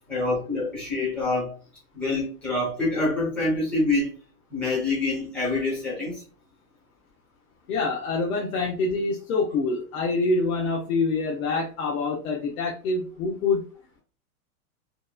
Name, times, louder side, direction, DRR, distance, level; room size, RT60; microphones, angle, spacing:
voice 1, 0.1-1.5 1.9-4.1 4.5-6.2, left 2 dB, 5° left, 0.5 m, -26 dB
voice 2, 7.7-13.6, left 3 dB, 65° left, 0.7 m, -26 dB
2.9 x 2.2 x 2.2 m
supercardioid pair, 165°, 44 cm